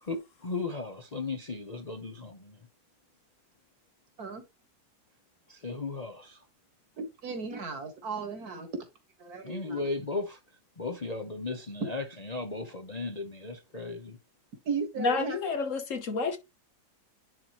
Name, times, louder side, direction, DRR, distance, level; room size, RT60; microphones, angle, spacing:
voice 1, 0.0-2.6 5.5-6.4 9.4-10.4 10.8-14.2, left 3 dB, 35° left, 0.7 m, -36 dB
voice 2, 7.0-8.7 9.2-9.8 14.7-15.4, right 5 dB, 65° right, 2.0 m, -35 dB
voice 3, 15.0-16.4, left 4 dB, 55° left, 1.2 m, -29 dB
10.5 x 4.1 x 3.0 m
omnidirectional pair, 1.7 m